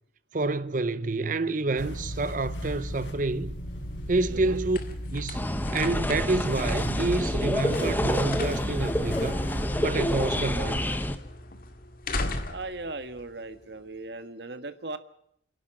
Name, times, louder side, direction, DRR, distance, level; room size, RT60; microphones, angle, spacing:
voice 1, 0.3-3.6 4.1-4.8 5.1-5.4 5.7-9.4 9.8-10.8, right 3 dB, 45° right, 0.7 m, -28 dB
sound 1, 1.8-10.6, equal, 80° left, 4.5 m, -36 dB
sound 2, 3.4-14.1, left 2 dB, 50° left, 2.1 m, -40 dB
voice 2, 4.3-4.6 12.5-15.0, right 2 dB, 65° right, 1.6 m, -38 dB
sound 3, 5.3-11.2, equal, 10° left, 1.1 m, -28 dB
27.0 x 11.5 x 8.9 m
head